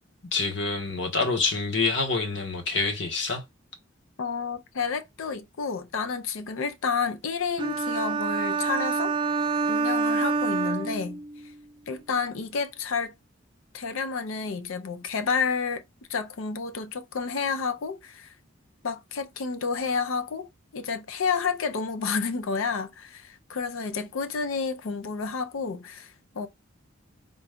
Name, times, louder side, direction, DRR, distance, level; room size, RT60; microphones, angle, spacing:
voice 1, 0.3-3.4, left 3 dB, 60° left, 1.2 m, -26 dB
voice 2, 4.2-9.1 9.7-11.2 11.9-13.1 13.7-15.8 16.1-18.3 18.8-26.5, left 5 dB, 75° left, 0.5 m, -30 dB
sound 1, 7.6-11.5, right 4 dB, 20° right, 0.4 m, -27 dB
3.9 x 2.3 x 3.5 m
head